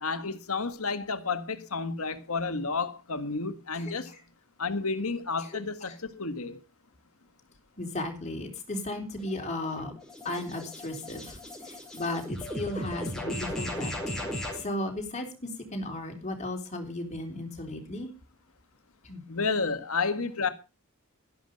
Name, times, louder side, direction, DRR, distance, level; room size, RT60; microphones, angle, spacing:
voice 1, 0.0-4.2 4.6-6.6 19.3-20.5, left 4 dB, 75° left, 1.6 m, -31 dB
voice 2, 5.4-6.0 7.8-9.9 10.2-18.1 19.0-19.2, left 1 dB, 30° left, 3.6 m, -35 dB
sound 1, 9.2-14.6, equal, ahead, 4.7 m, -37 dB
12.0 x 11.5 x 5.2 m
head